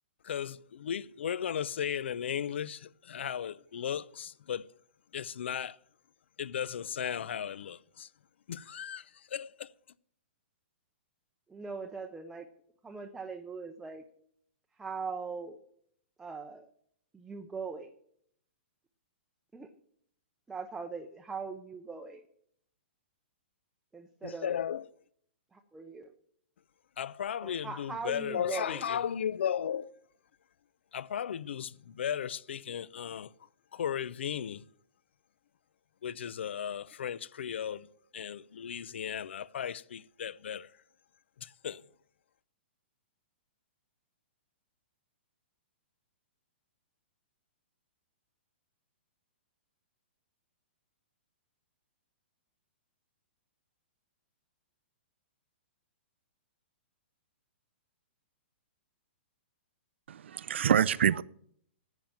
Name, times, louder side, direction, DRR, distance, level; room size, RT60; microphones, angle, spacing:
voice 1, 0.2-4.7 5.1-5.8 6.4-8.1 8.5-9.7 24.2-24.9 27.0-29.9 30.9-33.3 33.7-34.6 36.0-37.9 38.1-40.7 41.4-41.8, left 9 dB, 75° left, 0.5 m, -35 dB
voice 2, 11.5-12.5 12.8-14.0 14.8-15.6 16.2-16.7 17.1-17.9 19.5-19.7 20.5-22.2 23.9-24.6 25.5-26.1 27.4-28.8, right 4 dB, 5° right, 0.5 m, -40 dB
voice 3, 60.1-61.2, right 9 dB, 80° right, 0.5 m, -26 dB
11.0 x 9.0 x 7.2 m
hypercardioid pair, 165°, 6 cm